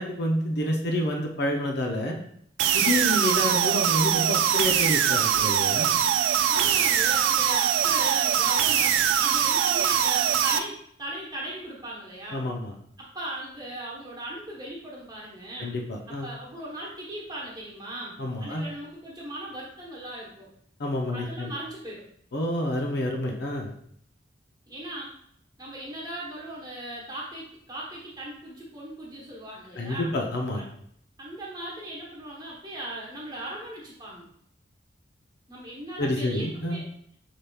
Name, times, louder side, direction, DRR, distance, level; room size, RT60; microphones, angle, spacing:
voice 1, 0.0-2.2 2.7-6.0 12.3-12.7 15.6-16.3 18.2-18.6 20.8-21.5 22.3-23.7 29.8-30.6 36.0-36.8, left 1 dB, 60° left, 1 dB, 0.6 m, -28 dB
sound 1, 2.6-10.6, right 9 dB, 90° right, 0.3 m, -22 dB
voice 2, 6.5-12.4 13.0-15.7 16.1-20.5 21.1-22.0 24.7-25.1 25.6-30.1 30.5-30.7 31.2-34.3 35.5-36.8, right 1 dB, 20° right, -4 dB, 1.0 m, -38 dB
5.7 x 3.4 x 2.3 m, 0.68 s
head